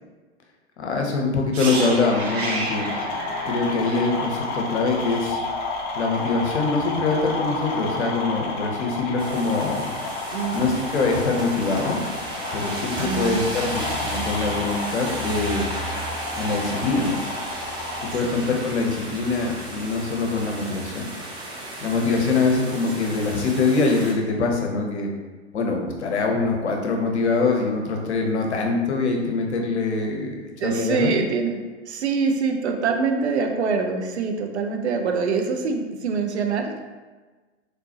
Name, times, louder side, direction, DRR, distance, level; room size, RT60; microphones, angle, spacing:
voice 1, 0.8-2.9 3.4-5.4 5.9-9.9 10.5-12.0 12.5-15.7 16.4-17.2 18.1-21.1 21.8-25.1 25.5-31.1, left 3 dB, 70° left, 1 dB, 0.9 m, -24 dB
sound 1, 1.5-5.4 5.7-5.9, right 2 dB, 45° right, 0.9 m, -32 dB
sound 2, 1.6-18.1, left 2 dB, 35° left, 0.8 m, -31 dB
sound 3, 9.2-24.1, right 1 dB, 15° right, 0.6 m, -34 dB
voice 2, 10.3-10.8 13.0-13.5 18.2-18.6 22.1-22.2 30.6-31.6 31.9-36.8, right 5 dB, 65° right, 4 dB, 0.7 m, -25 dB
3.8 x 3.4 x 2.9 m, 1.3 s
figure-of-eight pair, 100°, 35 cm